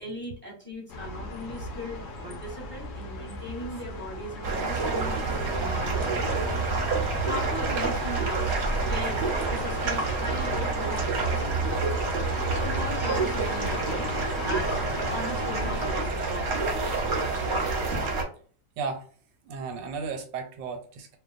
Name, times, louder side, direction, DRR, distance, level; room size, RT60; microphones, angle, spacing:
voice 1, 0.0-6.4 7.2-8.5 8.9-11.4 12.6-14.1 14.4-14.8 15.1-17.0, equal, 10° left, -5 dB, 0.8 m, -38 dB
sound 1, 0.9-16.0, left 1 dB, 70° left, 0.7 m, -37 dB
sound 2, 4.4-18.2, right 3 dB, 55° right, 0.8 m, -28 dB
voice 2, 18.8-19.1 19.4-21.2, right 5 dB, 90° right, 5 dB, 1.3 m, -34 dB
2.8 x 2.2 x 2.4 m, 0.44 s
omnidirectional pair, 1.9 m